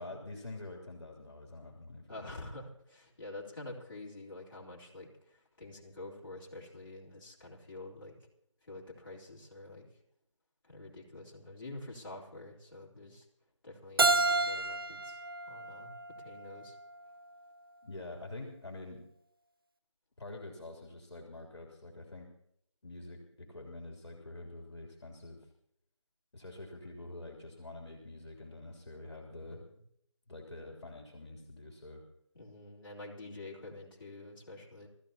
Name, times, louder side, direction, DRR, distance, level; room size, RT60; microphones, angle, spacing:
voice 1, 0.0-2.4 17.8-19.1 20.2-22.3 22.8-25.4 26.3-29.6 30.3-32.0, left 2 dB, 60° left, 1 dB, 3.2 m, -46 dB
voice 2, 2.1-8.1 8.6-9.9 10.6-13.2 13.6-15.9 16.2-16.8 29.4-29.7 32.3-34.9, left 2 dB, 45° left, -5 dB, 3.8 m, -47 dB
Keyboard (musical), 14.0-16.8, right 3 dB, 45° right, 0.5 m, -31 dB
27.0 x 14.0 x 2.9 m, 0.73 s
figure-of-eight pair, 170°, 16 cm